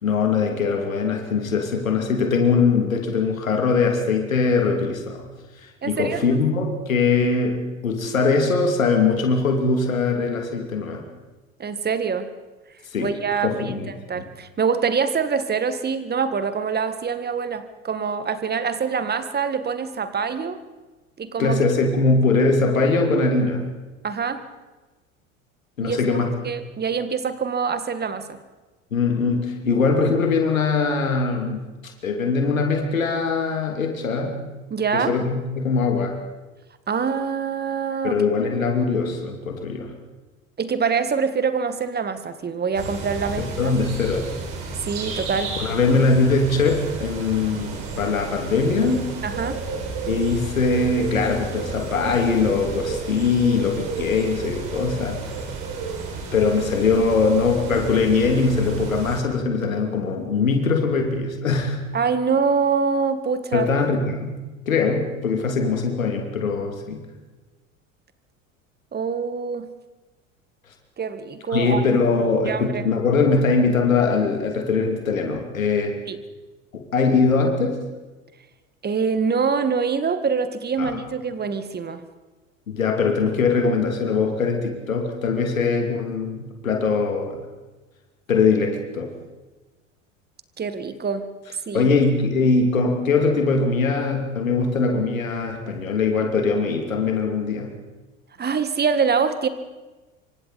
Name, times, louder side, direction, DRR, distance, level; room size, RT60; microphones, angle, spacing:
voice 1, 0.0-5.2 5.6-11.0 12.9-13.1 13.4-13.9 14.1-14.2 21.4-23.6 25.8-26.3 28.9-31.6 32.0-34.3 34.9-36.2 38.0-39.9 43.4-44.3 45.1-45.2 45.6-49.1 50.1-55.2 56.3-61.8 63.5-64.3 64.7-67.0 71.5-76.0 76.9-77.8 80.8-80.9 82.7-87.4 88.3-89.1 91.7-97.7, left 4 dB, 80° left, 3 dB, 2.8 m, -21 dB
voice 2, 5.8-6.2 11.6-12.3 13.0-13.6 14.1-20.6 21.2-21.6 24.0-24.4 25.8-28.4 34.7-35.1 36.9-38.2 40.6-43.7 44.8-45.5 49.2-49.6 61.9-63.7 68.9-69.7 71.0-71.8 72.5-72.8 76.1-76.2 78.8-82.0 90.6-91.3 91.7-91.9 98.4-99.5, right 5 dB, 25° right, 11 dB, 1.8 m, -25 dB
sound 1, 42.7-59.2, right 4 dB, 55° right, 6.0 m, -32 dB
27.0 x 25.0 x 4.3 m, 1.2 s
figure-of-eight pair, 75°, 40 cm